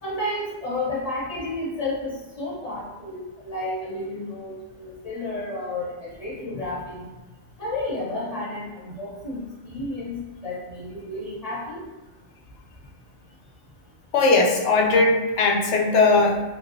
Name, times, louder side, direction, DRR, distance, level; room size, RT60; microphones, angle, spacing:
voice 1, 0.0-3.2 3.4-7.1 7.6-11.8, left 2 dB, 35° left, -7 dB, 0.8 m, -31 dB
voice 2, 14.1-16.4, left 3 dB, 75° left, 0 dB, 0.9 m, -19 dB
3.2 x 2.8 x 2.6 m, 1.2 s
omnidirectional pair, 1.2 m